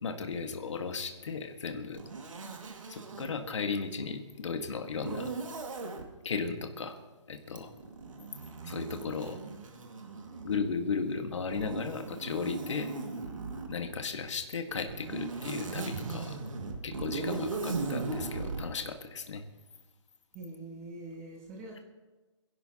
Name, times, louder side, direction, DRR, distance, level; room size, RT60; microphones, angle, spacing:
voice 1, 0.0-2.0 2.9-5.4 6.2-7.0 7.3-7.7 8.6-9.4 10.4-12.9 13.7-16.4 16.8-19.4, left 5 dB, 65° left, 5 dB, 1.8 m, -35 dB
Zipper (clothing), 1.9-3.3 5.0-6.1 7.5-10.7 11.5-13.8 14.7-18.7, right 3 dB, 85° right, 2.2 m, -38 dB
voice 2, 20.3-21.8, right 2 dB, 20° right, -11 dB, 5.8 m, -44 dB
26.5 x 11.5 x 3.0 m, 1.2 s
hypercardioid pair, 160°, 16 cm